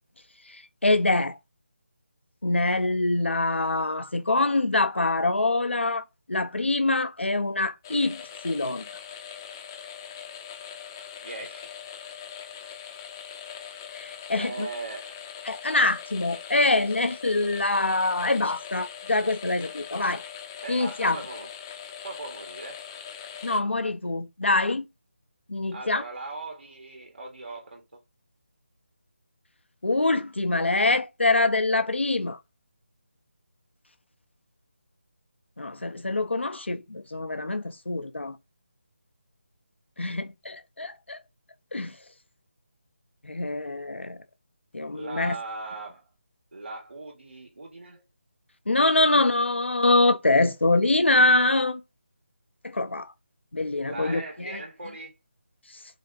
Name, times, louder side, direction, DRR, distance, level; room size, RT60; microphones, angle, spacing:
voice 1, 0.8-1.4 2.4-8.8 14.0-14.7 15.5-20.2 20.7-21.2 23.4-24.9 25.5-26.0 29.8-32.4 35.6-38.4 40.0-41.2 41.7-41.9 43.2-44.2 44.7-45.4 48.7-51.8 52.6-53.1 53.5-54.6, left 2 dB, 90° left, 0.8 m, -24 dB
sound 1, 7.8-23.6, left 8 dB, 20° left, 0.7 m, -41 dB
voice 2, 11.2-11.7 14.3-15.2 20.6-21.5 22.0-22.8 25.7-28.0 44.9-46.1 46.5-48.0 53.9-55.1, right 3 dB, 75° right, 1.8 m, -39 dB
5.2 x 3.4 x 2.5 m
figure-of-eight pair, 160°, 6 cm